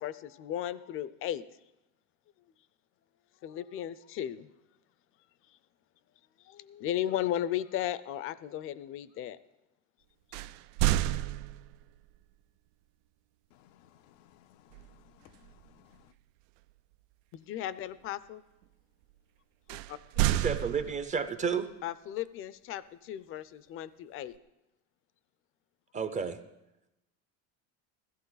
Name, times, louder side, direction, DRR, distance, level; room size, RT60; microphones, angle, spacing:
voice 1, 0.0-1.4 3.4-4.5 6.4-9.4 10.3-10.4 17.3-18.4 19.7-20.0 21.8-24.3, left 11 dB, 35° left, 0.5 m, -35 dB
sound 1, 10.3-12.0 14.7-15.0 15.4-15.7 19.7-21.4, right 14 dB, 90° right, 0.6 m, -30 dB
voice 2, 13.5-16.1, left 13 dB, 90° left, 0.7 m, -61 dB
voice 3, 20.3-21.7 25.9-26.4, right 6 dB, 20° right, 0.5 m, -31 dB
16.0 x 14.0 x 4.0 m
cardioid pair, 155°, 37 cm